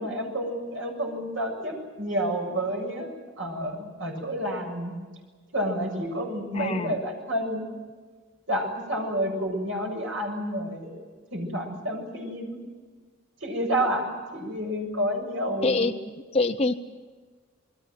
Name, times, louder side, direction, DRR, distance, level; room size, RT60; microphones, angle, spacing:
voice 1, 0.0-3.1 3.4-4.9 5.5-7.7 8.5-10.9 11.3-12.6 13.4-15.9, equal, 75° right, 2 dB, 7.4 m, -29 dB
voice 2, 6.5-7.0 15.6-15.9 16.3-16.7, left 3 dB, 30° left, 5 dB, 0.7 m, -24 dB
29.0 x 21.5 x 7.7 m, 1.4 s
head